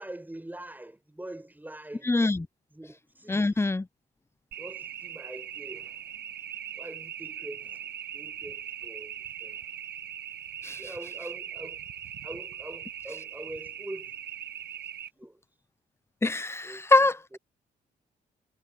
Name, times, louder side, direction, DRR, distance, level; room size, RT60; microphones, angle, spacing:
voice 1, 0.0-2.2 2.7-3.6 4.6-5.9 6.8-9.6 10.8-11.8 12.2-14.2 15.1-15.4 16.6-16.9 17.3-17.4, right 1 dB, 10° right, 5.3 m, -44 dB
voice 2, 2.0-2.5 3.3-3.9 10.6-10.8 16.2-17.2, left 2 dB, 15° left, 0.7 m, -24 dB
sound 1, 4.5-15.1, right 10 dB, 65° right, 1.2 m, -40 dB
supercardioid pair, 60°, 18 cm